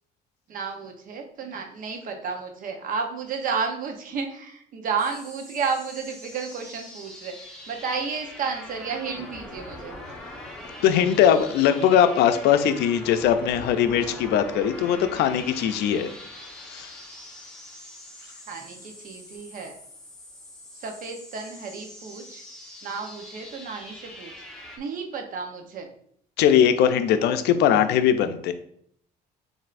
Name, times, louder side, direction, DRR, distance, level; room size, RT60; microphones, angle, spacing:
voice 1, 0.5-10.0 18.5-19.7 20.7-22.4 22.8-24.3 24.8-25.9, right 5 dB, 55° right, 4 dB, 0.8 m, -32 dB
sound 1, 5.0-24.8, left 1 dB, 5° left, 1.0 m, -43 dB
voice 2, 10.8-16.1 16.7-16.9 26.4-28.5, left 9 dB, 80° left, 9 dB, 0.4 m, -20 dB
7.5 x 2.7 x 2.5 m, 0.66 s
cardioid pair, 110°, 17 cm